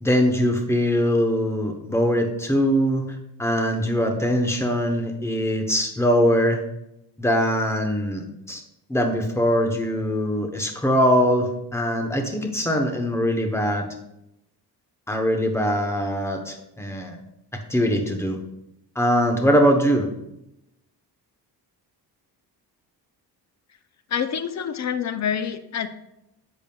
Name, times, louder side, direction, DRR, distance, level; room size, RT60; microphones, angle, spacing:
voice 1, 0.0-6.6 7.2-8.6 8.9-13.9 15.1-17.2 17.7-18.4 18.9-20.1, equal, 5° left, 4 dB, 0.9 m, -22 dB
voice 2, 24.1-25.9, left 8 dB, 40° left, 10 dB, 0.6 m, -27 dB
10.5 x 7.1 x 2.3 m, 0.84 s
cardioid pair, 150°, 41 cm